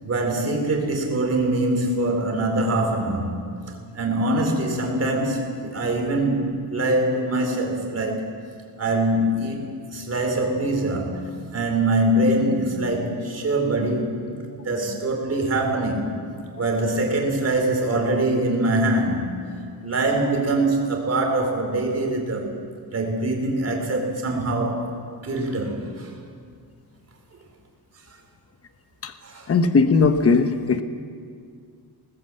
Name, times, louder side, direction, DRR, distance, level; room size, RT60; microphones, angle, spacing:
voice 1, 0.0-3.3 3.9-8.3 8.8-11.2 11.5-14.2 14.6-16.1 16.6-19.3 19.8-22.6 22.9-24.9 25.2-26.1 29.2-29.5, right 1 dB, 40° right, 2 dB, 4.0 m, -23 dB
voice 2, 29.5-30.8, left 4 dB, 35° left, 8 dB, 1.1 m, -18 dB
20.0 x 19.0 x 7.8 m, 2.2 s
wide cardioid pair, 145°, 39 cm